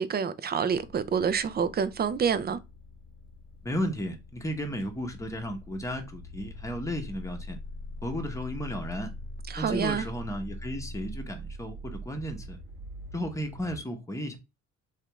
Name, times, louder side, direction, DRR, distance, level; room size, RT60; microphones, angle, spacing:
voice 1, 0.0-2.6 9.5-10.1, right 7 dB, 35° right, 0.4 m, -27 dB
sound 1, 0.7-13.8, left 1 dB, 70° right, 0.9 m, -43 dB
voice 2, 3.6-7.6 8.0-9.1 9.5-12.6 13.1-14.4, equal, 10° left, 0.9 m, -34 dB
3.4 x 2.4 x 2.9 m
cardioid pair, 90°, 30 cm